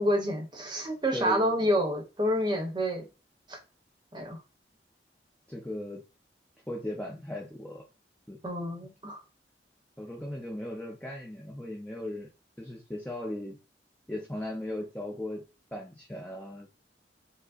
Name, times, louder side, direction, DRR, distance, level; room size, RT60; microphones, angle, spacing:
voice 1, 0.0-3.0 3.5-3.6 4.1-4.4 8.4-9.2, equal, 25° right, 0.8 m, -28 dB
voice 2, 1.1-1.6 5.5-6.0 6.7-7.8 8.3-8.4 10.0-12.3 12.6-13.6 14.1-15.4 15.7-16.7, left 1 dB, 5° left, 0.5 m, -37 dB
4.7 x 2.0 x 2.4 m
head